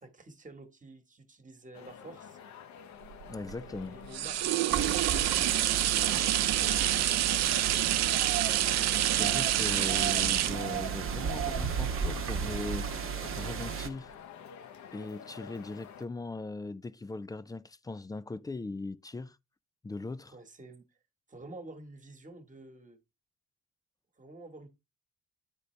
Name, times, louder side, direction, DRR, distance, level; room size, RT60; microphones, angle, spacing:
voice 1, 0.0-2.4 3.8-5.3 6.0-7.6 20.3-20.9 21.3-23.0 24.2-24.7, right 2 dB, 25° right, 1.4 m, -50 dB
sound 1, 1.7-16.0, left 8 dB, 70° left, 0.9 m, -49 dB
sound 2, 3.1-12.9 13.4-13.5, right 14 dB, 60° right, 0.4 m, -28 dB
voice 2, 3.3-4.0 9.2-14.1 14.9-19.4 19.8-20.3, left 3 dB, 15° left, 0.3 m, -39 dB
sound 3, 4.7-13.9, right 7 dB, 45° right, 0.9 m, -34 dB
9.8 x 4.0 x 3.2 m
cardioid pair, 90°, 30 cm